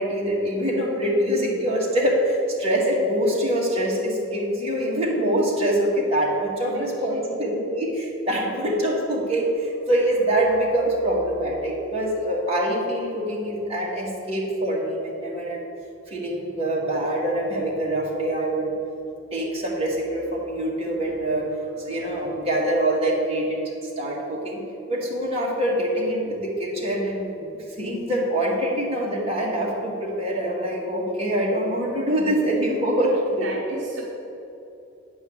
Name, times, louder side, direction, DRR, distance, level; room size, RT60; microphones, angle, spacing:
voice 1, 0.0-15.6 16.1-18.7 19.3-21.5 21.8-24.6 24.9-33.5, right 1 dB, 30° right, -4 dB, 2.1 m, -24 dB
voice 2, 6.6-7.4 33.3-34.0, right 1 dB, 60° right, -2 dB, 1.1 m, -34 dB
9.5 x 5.4 x 7.9 m, 2.8 s
head